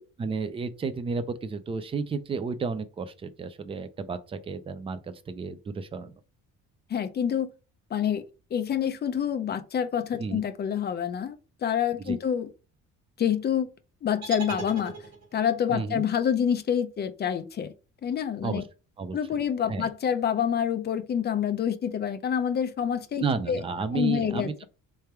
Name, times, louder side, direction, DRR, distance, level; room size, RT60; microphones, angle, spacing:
voice 1, 0.2-6.1 10.2-10.4 12.1-12.2 15.7-16.0 18.4-18.6 19.0-19.2 19.7-19.9 23.2-24.6, right 4 dB, 20° right, 0.4 m, -32 dB
voice 2, 6.9-7.5 7.9-8.2 8.5-12.5 13.2-13.7 14.0-14.9 15.3-17.7 18.0-18.6 19.1-23.6 23.9-24.6, left 8 dB, 30° left, 0.5 m, -27 dB
sound 1, 14.2-15.5, right 4 dB, 55° right, 1.9 m, -37 dB
3.4 x 3.3 x 4.4 m
cardioid pair, 175°, 31 cm